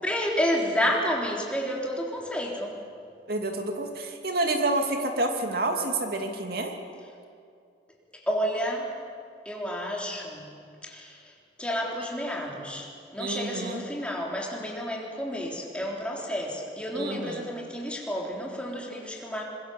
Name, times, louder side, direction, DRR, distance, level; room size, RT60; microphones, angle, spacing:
voice 1, 0.0-2.8 8.1-8.9 9.5-10.5 10.8-19.4, equal, 5° left, -2 dB, 3.7 m, -30 dB
voice 2, 3.3-6.8 13.2-13.8 16.9-17.5, right 2 dB, 60° right, 4 dB, 2.5 m, -28 dB
25.0 x 21.5 x 7.3 m, 2.3 s
head